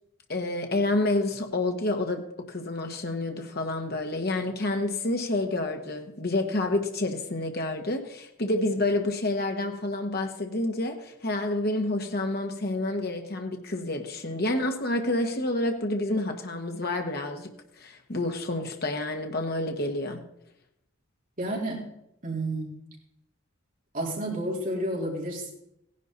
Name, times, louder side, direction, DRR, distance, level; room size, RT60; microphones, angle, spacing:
voice 1, 0.3-17.5 17.8-20.2, left 2 dB, 50° left, 1.4 m, -29 dB
voice 2, 21.4-21.9 22.2-22.8 23.9-25.5, right 1 dB, 40° right, 3.7 m, -30 dB
16.5 x 11.0 x 4.0 m
head